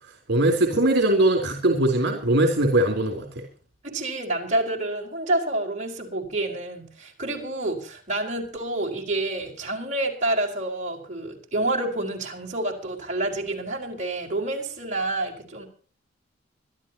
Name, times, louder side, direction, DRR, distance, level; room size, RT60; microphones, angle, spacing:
voice 1, 0.3-3.4, right 1 dB, 65° right, 4 dB, 3.6 m, -21 dB
voice 2, 3.8-15.7, right 2 dB, 40° right, 0 dB, 4.7 m, -28 dB
25.0 x 12.5 x 3.0 m, 0.43 s
head